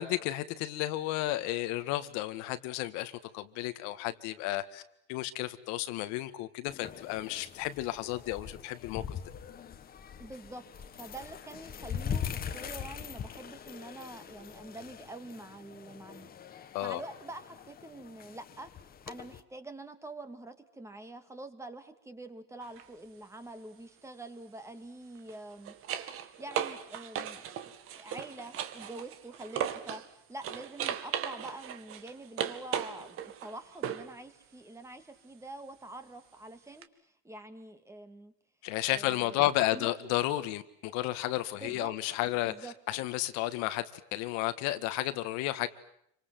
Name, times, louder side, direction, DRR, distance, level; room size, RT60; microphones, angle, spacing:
voice 1, 0.0-4.8 5.1-9.0 16.7-17.0 38.6-42.5 42.9-43.8 44.1-45.7, left 15 dB, 70° left, 2.0 m, -32 dB
sound 1, 6.7-19.4, left 8 dB, 30° left, 1.7 m, -42 dB
voice 2, 10.2-10.7 11.0-18.7 19.1-38.3 38.8-39.4 39.7-40.1 41.6-41.9 42.4-42.7, right 2 dB, 10° right, 2.5 m, -46 dB
sound 2, 22.6-22.9 25.2-30.1 30.4-34.2 36.8-36.9, right 9 dB, 50° right, 2.2 m, -37 dB
28.0 x 25.5 x 7.8 m
cardioid pair, 135°, 30 cm